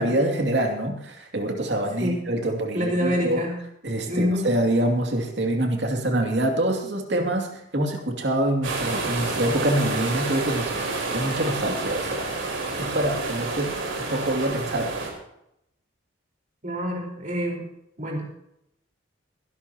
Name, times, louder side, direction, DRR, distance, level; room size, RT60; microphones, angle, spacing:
voice 1, 0.0-3.4 3.8-12.4 12.8-14.9, right 1 dB, 60° right, 3 dB, 2.6 m, -25 dB
voice 2, 2.7-3.5 4.1-4.5 16.6-17.6 18.0-18.3, equal, 45° right, -1 dB, 4.4 m, -26 dB
sound 1, 8.6-15.1, right 3 dB, 85° right, 4.2 m, -29 dB
22.5 x 12.0 x 2.9 m, 0.79 s
head